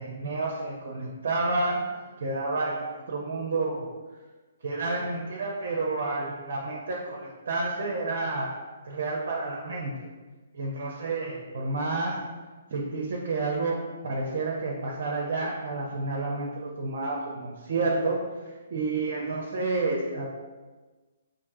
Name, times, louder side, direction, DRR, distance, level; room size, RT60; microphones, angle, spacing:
voice 1, 0.0-1.8 2.2-3.9 4.6-8.5 8.8-9.9 10.5-12.2 12.7-13.8 14.0-18.2 18.7-20.3, right 3 dB, 60° right, -2 dB, 0.6 m, -30 dB
4.5 x 2.6 x 2.6 m, 1.3 s
hypercardioid pair, 140°, 0 cm